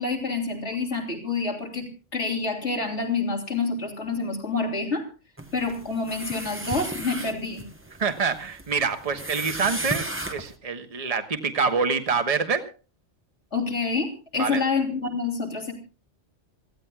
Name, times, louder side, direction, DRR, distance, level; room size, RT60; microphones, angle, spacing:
voice 1, 0.0-5.1 5.5-7.6 13.5-15.7, left 4 dB, 70° left, 3 dB, 3.5 m, -27 dB
sound 1, 5.4-10.5, right 1 dB, 10° right, 1.1 m, -35 dB
voice 2, 8.0-12.6 14.4-14.6, right 5 dB, 30° right, 7 dB, 1.3 m, -26 dB
26.5 x 15.5 x 2.4 m, 0.35 s
omnidirectional pair, 1.2 m